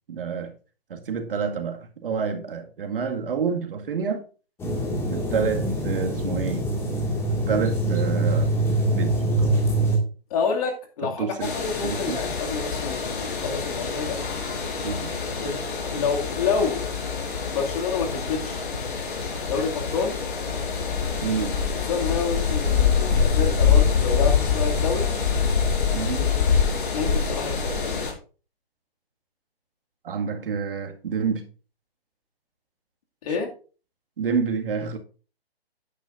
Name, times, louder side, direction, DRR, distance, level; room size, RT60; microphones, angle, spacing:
voice 1, 0.1-0.5 0.9-4.2 5.1-6.7 7.3-8.5 8.9-9.5 11.0-11.5 11.8-12.2 14.8-15.2 21.2-21.6 25.9-26.3 30.0-31.4 34.2-35.0, right 6 dB, 60° right, 2.0 m, -28 dB
sound 1, 4.6-10.0, right 1 dB, 10° left, 2.0 m, -24 dB
voice 2, 10.3-14.2 15.4-15.6 15.9-16.9 17.5-18.6 19.5-20.2 21.9-25.1 26.9-28.1 33.2-33.5, left 5 dB, 35° left, 2.4 m, -28 dB
sound 2, 11.4-28.1, left 6 dB, 55° left, 5.0 m, -25 dB
12.5 x 10.0 x 2.6 m
hypercardioid pair, 160°, 31 cm